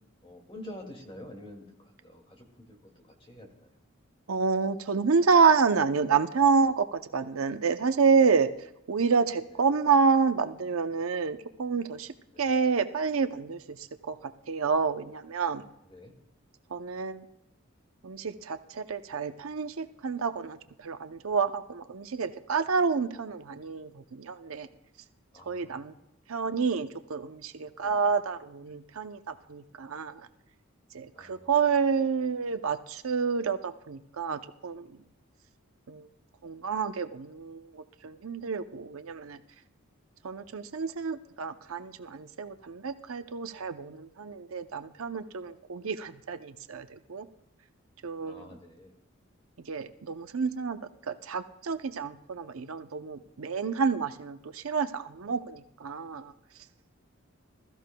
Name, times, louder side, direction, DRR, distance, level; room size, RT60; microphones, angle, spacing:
voice 1, 0.2-2.8 3.2-3.7 12.3-12.5 15.8-16.2 25.3-25.9 27.8-28.0 31.1-31.5 48.2-48.9, left 1 dB, 25° left, 2 dB, 2.1 m, -47 dB
voice 2, 4.3-8.5 8.9-15.6 16.7-17.3 18.0-24.7 25.5-25.9 26.3-30.3 30.9-35.0 35.9-36.1 36.4-39.4 40.2-47.3 48.0-48.6 49.7-50.8 51.1-56.3, right 5 dB, 85° right, 10 dB, 0.7 m, -28 dB
21.0 x 13.5 x 2.3 m, 0.83 s
head